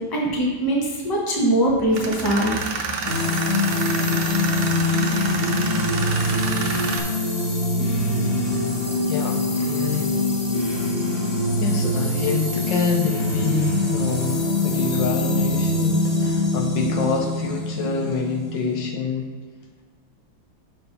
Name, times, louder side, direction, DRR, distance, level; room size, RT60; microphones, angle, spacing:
voice 1, 0.0-2.6, right 1 dB, 15° left, -3 dB, 1.1 m, -22 dB
Tools, 1.9-7.0, right 4 dB, 75° right, 1.5 m, -29 dB
sound 1, 3.0-18.8, left 2 dB, 50° left, 2.1 m, -23 dB
voice 2, 9.1-10.2 11.6-19.3, left 5 dB, 70° left, 2 dB, 1.4 m, -26 dB
6.8 x 4.4 x 5.4 m, 1.5 s
omnidirectional pair, 2.1 m